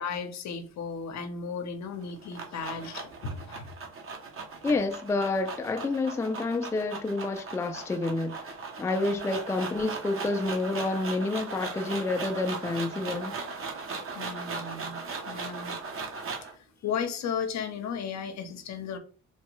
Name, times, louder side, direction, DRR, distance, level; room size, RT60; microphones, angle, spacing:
voice 1, 0.0-3.7 14.1-15.8 16.8-19.0, left 6 dB, 65° left, 0.7 m, -35 dB
sound 1, 1.9-16.6, right 4 dB, 45° right, 0.8 m, -38 dB
voice 2, 4.6-8.5 8.8-13.3, left 2 dB, 10° left, 0.3 m, -29 dB
3.1 x 2.2 x 3.0 m
cardioid pair, 90°, 30 cm